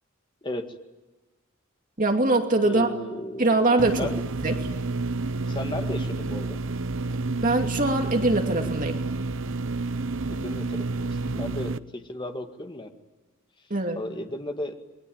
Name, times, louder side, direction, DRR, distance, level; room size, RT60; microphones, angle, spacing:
voice 1, 0.4-0.8 2.6-3.5 3.9-4.1 5.4-6.6 10.3-12.9 14.0-14.8, left 1 dB, 20° left, 5 dB, 2.0 m, -35 dB
voice 2, 2.0-2.9 3.4-4.1 4.4-4.5 7.4-9.0 13.7-14.0, right 2 dB, 40° right, 3 dB, 2.6 m, -22 dB
sound 1, 3.8-11.8, right 3 dB, 65° right, 0.8 m, -29 dB
28.5 x 22.0 x 9.0 m, 1.2 s
head